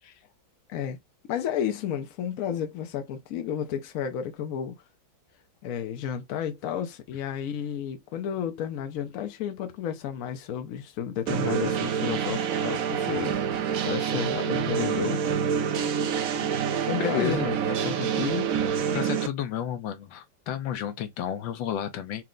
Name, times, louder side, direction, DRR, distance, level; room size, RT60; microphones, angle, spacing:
voice 1, 1.3-4.8 5.6-16.0 16.8-18.5, left 9 dB, 70° left, 0.8 m, -32 dB
sound 1, 11.3-19.3, right 7 dB, 65° right, 0.9 m, -27 dB
voice 2, 17.0-17.5 18.9-22.2, left 10 dB, 90° left, 1.4 m, -31 dB
4.4 x 2.0 x 3.7 m
omnidirectional pair, 2.1 m